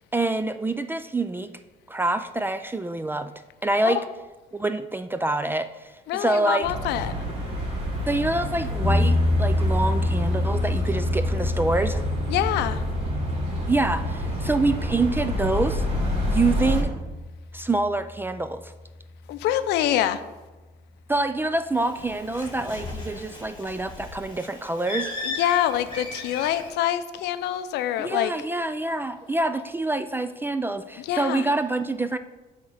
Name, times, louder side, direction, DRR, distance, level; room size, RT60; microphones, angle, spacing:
voice 1, 0.1-1.5 1.9-3.3 3.6-4.0 4.5-6.7 8.1-12.0 13.7-15.8 16.3-16.9 17.5-18.7 21.1-25.1 28.0-32.2, right 2 dB, 10° right, 10 dB, 0.3 m, -26 dB
voice 2, 6.1-7.1 12.3-12.8 19.3-20.2 25.2-28.3 31.0-31.5, left 12 dB, 80° left, 12 dB, 0.5 m, -25 dB
sound 1, 6.6-16.8, equal, 35° right, 2.8 m, -28 dB
sound 2, 8.8-18.9, left 2 dB, 45° left, 1.6 m, -28 dB
Bird, 21.7-26.7, left 3 dB, 25° left, 1.9 m, -36 dB
8.5 x 3.6 x 6.5 m, 1.2 s
cardioid pair, 110°, 17 cm